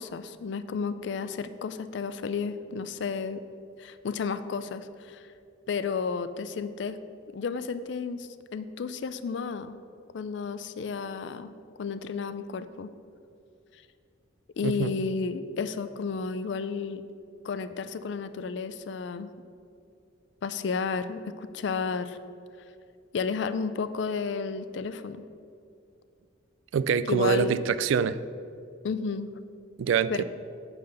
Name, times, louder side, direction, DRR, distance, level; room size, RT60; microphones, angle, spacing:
voice 1, 0.0-3.4 3.8-5.2 5.7-7.0 7.3-9.8 10.1-11.5 11.8-12.9 14.6-17.0 17.4-19.3 20.4-22.2 23.1-25.2 27.1-27.5 28.8-29.3 30.1-30.2, left 5 dB, 60° left, 13 dB, 0.4 m, -32 dB
voice 2, 26.7-28.2 29.8-30.2, right 6 dB, 75° right, 14 dB, 0.3 m, -25 dB
8.8 x 4.0 x 6.5 m, 2.4 s
head